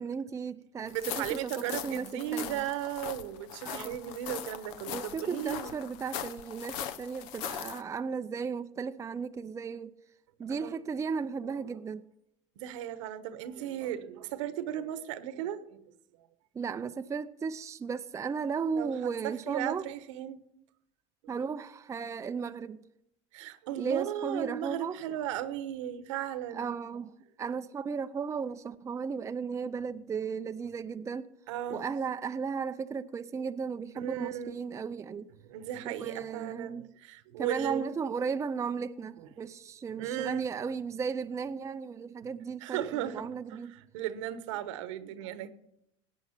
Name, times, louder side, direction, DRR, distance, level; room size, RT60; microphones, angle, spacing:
voice 1, 0.0-2.7 3.6-4.0 4.9-9.9 10.4-12.0 16.5-19.9 21.3-22.8 23.8-25.0 26.5-27.1 27.4-31.3 31.7-35.3 35.8-36.9 37.4-43.7, right 5 dB, 20° right, 0.5 m, -35 dB
voice 2, 0.8-5.7 10.6-10.7 12.6-15.8 16.2-16.3 18.7-18.9 19.2-20.4 21.2-21.3 23.3-26.7 31.5-31.9 34.0-34.5 35.5-37.8 39.4-39.5 39.9-40.5 42.6-45.5, right 11 dB, 85° right, 1.2 m, -36 dB
sound 1, 0.9-7.8, left 10 dB, 70° left, 1.0 m, -40 dB
17.5 x 9.1 x 5.8 m
supercardioid pair, 115°, 15 cm